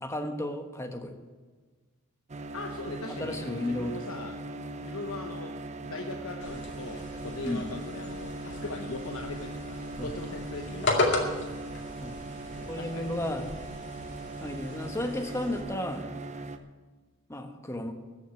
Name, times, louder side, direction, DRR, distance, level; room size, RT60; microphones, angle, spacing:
voice 1, 0.0-1.1 3.2-4.1 7.4-7.7 10.0-10.1 12.0-12.2 12.7-13.5 14.4-16.1 17.3-17.9, left 1 dB, 15° left, 5 dB, 1.2 m, -33 dB
sound 1, 2.3-16.6, right 2 dB, 35° right, 0.7 m, -40 dB
voice 2, 2.5-4.4 4.8-5.5 5.9-11.3 12.5-13.2, left 2 dB, 90° left, 2 dB, 1.0 m, -40 dB
sound 2, 6.4-15.6, left 2 dB, 55° left, 2.3 m, -35 dB
14.0 x 6.4 x 9.3 m, 1.4 s
head